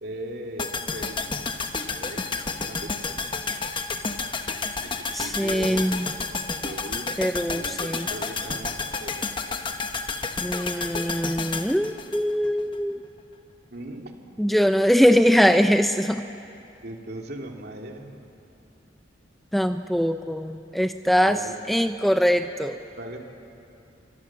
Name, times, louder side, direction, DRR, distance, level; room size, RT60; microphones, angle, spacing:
voice 1, 0.0-1.5 1.8-3.2 4.8-4.9 5.2-5.9 6.6-7.1 7.5-9.6 13.7-14.1 16.8-18.2 21.3-21.6 23.0-23.2, right 1 dB, 60° right, 2 dB, 2.6 m, -39 dB
sound 1, 0.6-12.8 13.0-13.1, left 4 dB, 25° left, 1.1 m, -31 dB
voice 2, 5.1-6.1 7.2-8.1 10.4-13.0 14.4-16.2 19.5-21.4 21.7-22.8, equal, ahead, 8 dB, 0.5 m, -22 dB
26.5 x 24.5 x 7.3 m, 2.7 s
head